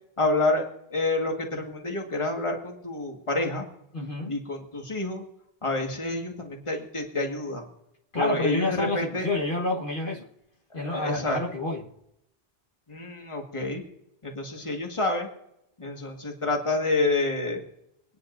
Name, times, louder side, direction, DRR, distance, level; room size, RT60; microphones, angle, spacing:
voice 1, 0.2-3.6 4.3-5.2 5.6-7.6 8.1-9.3 10.7-11.4 12.9-13.8 14.2-15.3 15.8-17.6, left 2 dB, 30° left, 1.8 m, -28 dB
voice 2, 3.9-4.3 8.1-10.3 10.7-11.9, left 2 dB, 55° left, 1.5 m, -29 dB
25.0 x 9.9 x 2.6 m
omnidirectional pair, 1.1 m